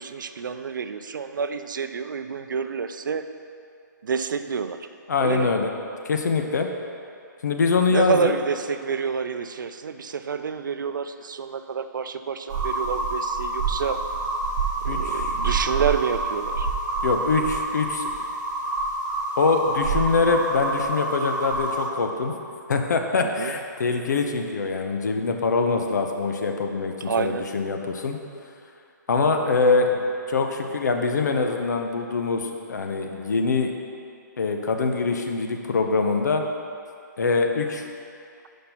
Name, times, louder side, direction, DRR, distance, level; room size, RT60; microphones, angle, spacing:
voice 1, 0.0-3.2 4.0-4.9 5.2-5.5 7.9-14.0 14.8-16.7 23.2-23.5 27.0-27.5, right 6 dB, 75° right, 9 dB, 0.4 m, -28 dB
voice 2, 5.1-5.7 6.0-6.7 7.4-8.3 14.9-15.3 17.0-18.1 19.4-22.3 22.7-28.2 29.1-30.0 30.3-33.7 34.4-36.4 37.2-37.9, left 4 dB, 60° left, 4 dB, 0.8 m, -24 dB
sound 1, 12.5-21.9, right 3 dB, 15° right, 0.8 m, -27 dB
5.7 x 5.2 x 6.1 m, 2.5 s
hypercardioid pair, 175°, 10 cm